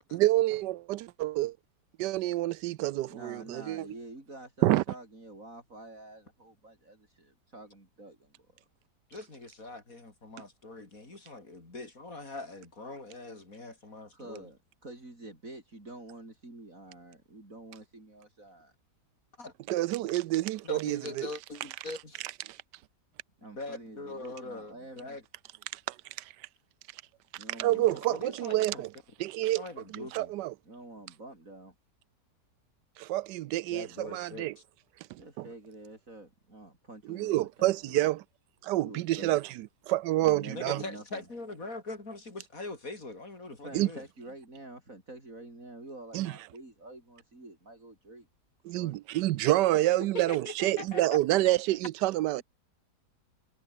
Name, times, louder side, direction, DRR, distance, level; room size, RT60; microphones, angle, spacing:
voice 1, 0.1-1.6 2.0-3.8 4.6-4.8 19.7-21.3 22.5-22.6 25.9-26.0 27.6-28.9 29.2-29.6 29.9-30.5 33.0-34.6 35.1-35.5 37.1-38.2 38.6-40.8 43.7-43.9 46.1-46.3 48.6-52.4, right 16 dB, 85° right, 1.2 m, -28 dB
voice 2, 3.1-8.5 14.1-18.7 23.4-25.2 27.4-28.4 30.6-31.7 35.2-38.0 38.8-39.4 40.2-41.3 43.6-48.3 48.7-48.9 52.3-52.4, right 2 dB, 50° right, 6.7 m, -48 dB
voice 3, 9.1-14.5 19.4-19.5 19.9-20.1 20.6-22.3 23.4-25.2 27.7-28.8 29.5-30.3 33.7-34.6 40.5-44.0 50.1-51.2, left 2 dB, 55° left, 5.0 m, -42 dB
omnidirectional pair, 1.8 m